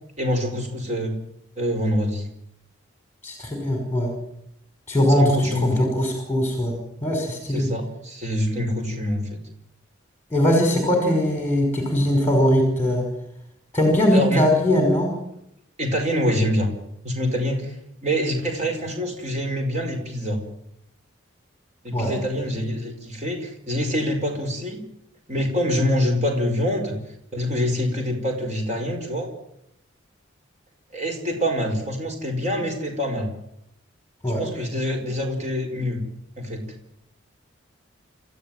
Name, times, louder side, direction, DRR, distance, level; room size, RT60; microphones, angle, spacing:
voice 1, 0.2-1.1 1.6-2.3 5.2-5.9 7.5-9.4 14.1-14.4 15.8-16.7 17.0-17.7 18.0-20.4 21.8-24.8 25.3-27.0 27.3-29.3 30.9-33.3 34.4-36.0 36.4-36.7, equal, 35° right, 3 dB, 5.1 m, -25 dB
voice 2, 3.2-4.1 4.9-7.7 10.3-13.0 13.7-15.1 21.9-22.1 34.2-34.4, equal, 10° left, 3 dB, 5.4 m, -21 dB
28.0 x 14.5 x 9.3 m, 0.79 s
head